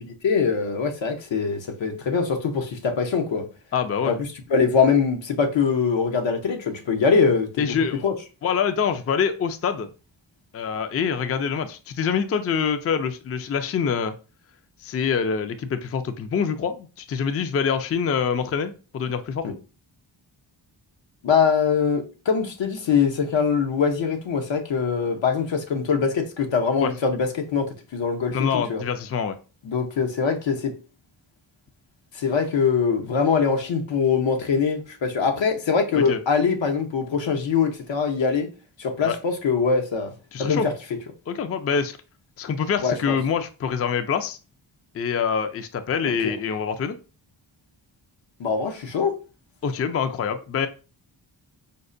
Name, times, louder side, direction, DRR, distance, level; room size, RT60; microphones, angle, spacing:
voice 1, 0.2-3.5 4.0-4.2 4.5-7.7 8.0-8.1 19.4-19.5 21.2-28.8 29.6-30.7 32.1-38.5 38.8-40.1 40.4-40.7 42.8-43.2 46.2-46.3 48.4-49.2, left 5 dB, 75° left, 0.8 m, -23 dB
voice 2, 3.7-4.2 7.6-8.0 8.4-9.9 10.5-14.1 14.8-19.5 26.8-26.9 28.3-29.4 36.0-36.2 39.0-39.2 40.3-40.7 41.3-42.0 42.4-44.4 44.9-47.0 49.6-50.7, left 6 dB, 35° left, 0.4 m, -25 dB
5.2 x 2.1 x 2.5 m
cardioid pair, 60°, 46 cm